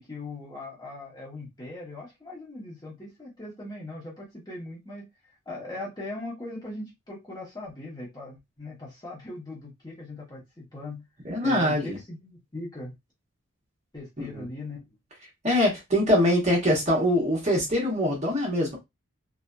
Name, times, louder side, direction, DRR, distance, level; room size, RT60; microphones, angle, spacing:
voice 1, 0.0-5.0 5.5-11.1 11.4-12.9 13.9-15.0, left 2 dB, 20° left, 1.0 m, -39 dB
voice 2, 11.2-12.0 14.3-14.4 15.4-18.8, equal, 30° right, 1.0 m, -23 dB
2.7 x 2.5 x 2.2 m
head